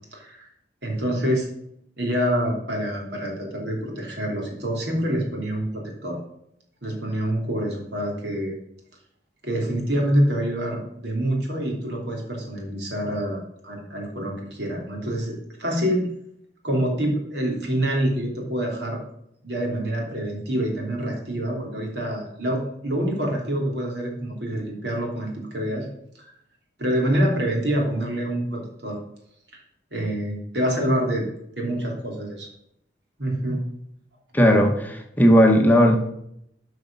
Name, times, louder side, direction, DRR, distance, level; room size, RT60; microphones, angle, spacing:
voice 1, 0.1-0.5 0.8-1.5 2.0-6.2 6.8-8.6 9.4-16.1 16.6-19.0 19.4-25.9 26.2-26.3 26.8-29.0 29.5-29.6 29.9-31.2 31.6-32.5 33.2-33.6, equal, 70° right, 0 dB, 3.1 m, -26 dB
voice 2, 34.3-36.0, equal, 10° left, 3 dB, 0.9 m, -16 dB
12.5 x 5.0 x 5.4 m, 0.76 s
head